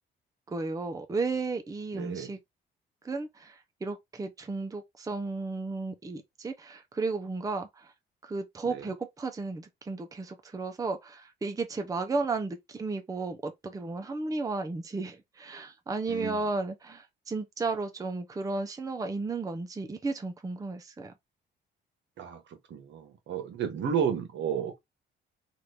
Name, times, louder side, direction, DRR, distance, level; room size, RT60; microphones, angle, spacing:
voice 1, 0.5-2.4 3.0-7.9 8.2-21.1, right 3 dB, 15° right, 0.6 m, -34 dB
voice 2, 1.9-2.3 8.7-8.8 16.1-16.4 22.2-22.4 22.7-24.8, right 7 dB, 65° right, 1.0 m, -32 dB
3.0 x 2.5 x 3.2 m
cardioid pair, 90°, 20 cm